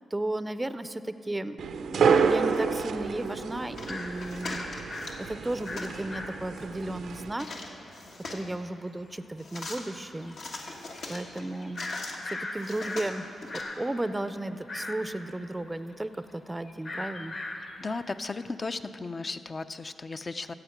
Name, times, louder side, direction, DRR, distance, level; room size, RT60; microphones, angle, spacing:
voice 1, 0.1-4.7 5.2-7.5 8.3-10.4 10.7-11.9 12.2-13.2 13.5-17.4, right 1 dB, 20° right, 12 dB, 0.5 m, -34 dB
sound 1, 1.6-7.3, right 6 dB, 75° right, 0.5 m, -29 dB
sound 2, 3.1-3.2 3.9-4.1 4.4-6.7 7.1-7.2 7.4-7.7 8.4-8.5 9.1-9.2 9.6-9.8 10.2-13.1 13.4-18.4, left 2 dB, 55° left, 1.7 m, -39 dB
sound 3, 3.8-5.2 5.5-5.9 7.3-8.5 9.4-9.8 10.3-12.2 12.6-13.6, left 2 dB, 75° left, 1.5 m, -41 dB
voice 2, 17.8-20.5, left 3 dB, 40° left, 11 dB, 0.5 m, -35 dB
14.5 x 8.1 x 5.9 m, 3.0 s
supercardioid pair, 55°, 0 cm